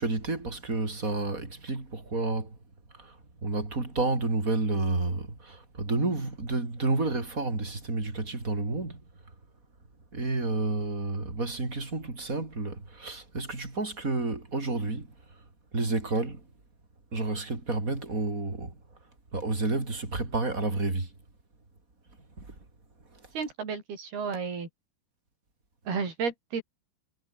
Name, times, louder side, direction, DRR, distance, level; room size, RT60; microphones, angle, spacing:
voice 1, 0.0-2.5 3.4-9.0 10.1-15.1 15.7-16.4 17.1-18.7 19.3-21.1, right 3 dB, 20° right, 4.6 m, -30 dB
voice 2, 23.3-24.7 25.9-26.6, right 5 dB, 70° right, 7.7 m, -32 dB
omnidirectional pair, 4.7 m